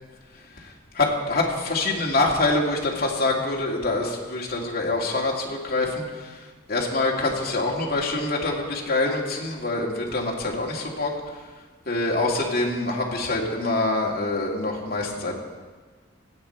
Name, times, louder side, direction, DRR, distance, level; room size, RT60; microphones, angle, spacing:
voice 1, 0.9-6.4 6.7-11.1 11.9-15.3, left 2 dB, 50° left, -2 dB, 2.1 m, -25 dB
17.0 x 8.1 x 4.4 m, 1.4 s
head